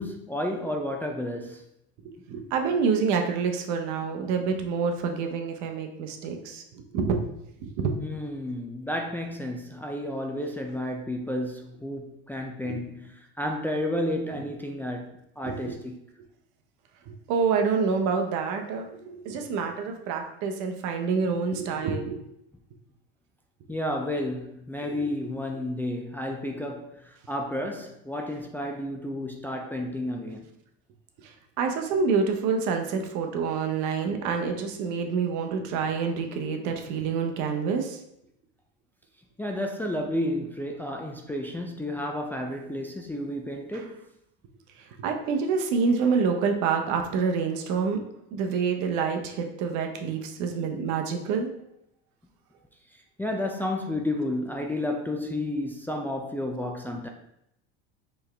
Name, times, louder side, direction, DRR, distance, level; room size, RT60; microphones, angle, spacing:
voice 1, 0.0-1.6 8.0-16.0 23.7-30.5 39.4-44.0 50.6-50.7 52.9-57.1, left 1 dB, 5° left, 0.4 m, -31 dB
voice 2, 2.0-7.2 7.6-7.9 12.6-12.7 15.4-15.8 17.1-22.2 24.9-25.3 31.6-38.0 45.0-48.0 48.3-51.5, right 5 dB, 65° right, 0.9 m, -27 dB
4.5 x 3.4 x 3.4 m
supercardioid pair, 105°, 32 cm